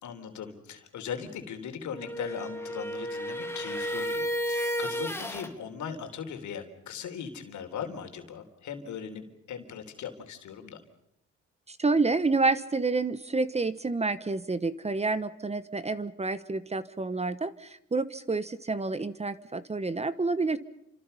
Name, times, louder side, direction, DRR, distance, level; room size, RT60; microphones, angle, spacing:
voice 1, 0.0-10.8, left 7 dB, 70° left, 6 dB, 3.7 m, -39 dB
sound 1, 1.9-5.5, equal, 10° left, 2.5 m, -32 dB
voice 2, 11.7-20.6, right 3 dB, 20° right, 14 dB, 1.1 m, -29 dB
29.5 x 26.5 x 5.6 m, 0.79 s
cardioid pair, 90°, 30 cm